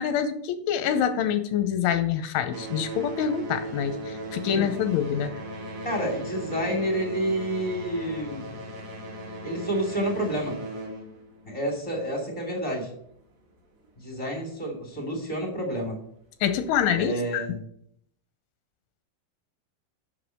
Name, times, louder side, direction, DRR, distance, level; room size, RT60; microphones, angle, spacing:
voice 1, 0.0-5.3 16.4-17.5, left 8 dB, 85° left, 10 dB, 3.1 m, -26 dB
sound 1, 0.7-2.0 2.3-12.6 13.5-13.6 14.3-14.4 15.0-15.1, right 1 dB, 70° right, 1.5 m, -37 dB
voice 2, 5.8-8.5 9.4-10.6 11.4-12.9 14.0-16.0 16.9-17.6, right 1 dB, 40° left, 0 dB, 0.4 m, -29 dB
7.9 x 5.8 x 7.8 m, 0.68 s
omnidirectional pair, 5.6 m